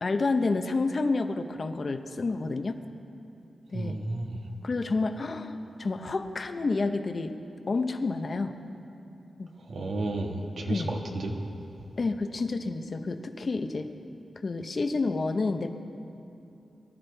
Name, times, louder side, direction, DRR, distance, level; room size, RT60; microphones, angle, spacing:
voice 1, 0.0-2.8 3.7-4.0 4.6-7.3 7.7-8.5 9.4-9.5 10.7-10.9 12.0-13.9 14.4-15.7, left 3 dB, 45° left, 7 dB, 0.8 m, -29 dB
voice 2, 3.7-4.4 9.7-11.3, right 2 dB, 85° right, 1 dB, 1.5 m, -32 dB
23.5 x 13.0 x 3.4 m, 2.7 s
wide cardioid pair, 105°, 0 cm